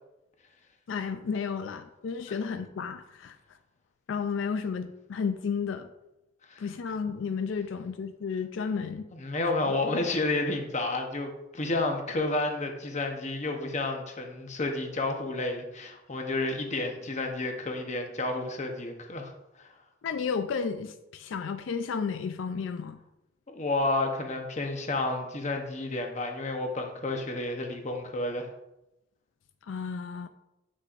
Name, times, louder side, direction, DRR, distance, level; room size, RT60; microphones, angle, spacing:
voice 1, 0.9-3.4 4.1-5.9 6.6-9.0 9.7-9.8 20.0-23.0 29.7-30.3, left 5 dB, 85° left, 9 dB, 0.4 m, -32 dB
voice 2, 9.1-19.3 19.6-19.7 23.5-28.5, left 2 dB, 40° left, 3 dB, 0.9 m, -31 dB
7.5 x 6.2 x 2.5 m, 0.91 s
head